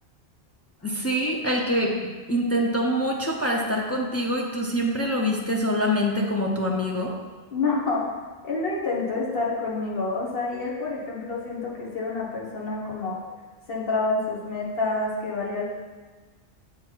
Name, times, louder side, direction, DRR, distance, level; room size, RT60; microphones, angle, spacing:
voice 1, 0.8-7.1, equal, 20° left, -1 dB, 0.4 m, -25 dB
voice 2, 7.5-8.1 8.4-13.2 13.7-15.6, left 3 dB, 60° left, -3 dB, 1.4 m, -28 dB
7.5 x 3.9 x 4.6 m, 1.3 s
omnidirectional pair, 1.1 m